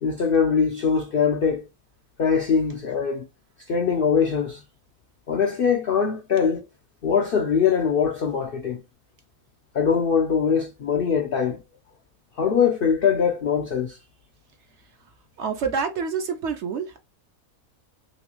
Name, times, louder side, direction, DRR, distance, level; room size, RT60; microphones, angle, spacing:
voice 1, 0.0-1.7 2.2-3.3 3.7-4.6 5.3-6.7 7.0-8.8 9.7-11.6 12.4-14.0, left 6 dB, 70° left, 0.5 m, -22 dB
voice 2, 15.4-17.0, right 5 dB, 65° right, 0.8 m, -27 dB
3.1 x 3.0 x 2.9 m
omnidirectional pair, 1.5 m